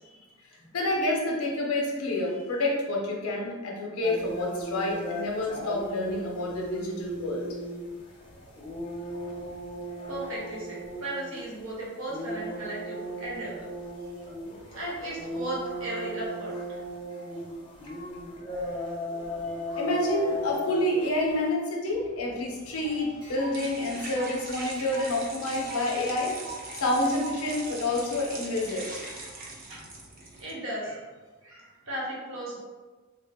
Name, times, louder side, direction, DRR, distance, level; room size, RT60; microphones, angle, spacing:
voice 1, 0.7-7.5 19.7-26.4 26.7-28.9, left 1 dB, 85° left, -1 dB, 0.7 m, -28 dB
sound 1, 4.0-21.5, equal, 25° left, 0.6 m, -37 dB
voice 2, 10.1-13.6 14.7-16.5 29.7-29.9 30.4-31.1 31.4-32.6, right 1 dB, 60° right, -5 dB, 1.0 m, -36 dB
sound 2, 21.9-30.5, right 2 dB, 40° right, 0.5 m, -42 dB
sound 3, 22.7-27.8, right 3 dB, 20° right, 0.9 m, -44 dB
3.4 x 2.1 x 3.5 m, 1.3 s
head